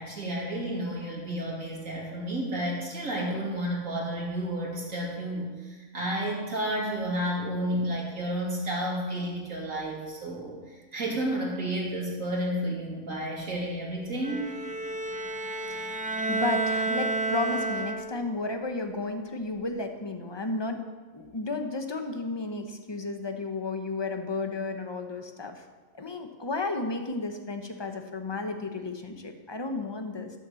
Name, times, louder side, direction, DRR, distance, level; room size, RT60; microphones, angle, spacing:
voice 1, 0.0-14.7, right 1 dB, 70° right, -3 dB, 3.1 m, -31 dB
Bowed string instrument, 14.2-18.4, right 2 dB, 10° right, 0.4 m, -30 dB
voice 2, 15.7-20.8 21.1-25.6 25.9-30.3, left 3 dB, 20° left, 6 dB, 0.9 m, -33 dB
12.5 x 7.0 x 7.0 m, 1.3 s
omnidirectional pair, 1.4 m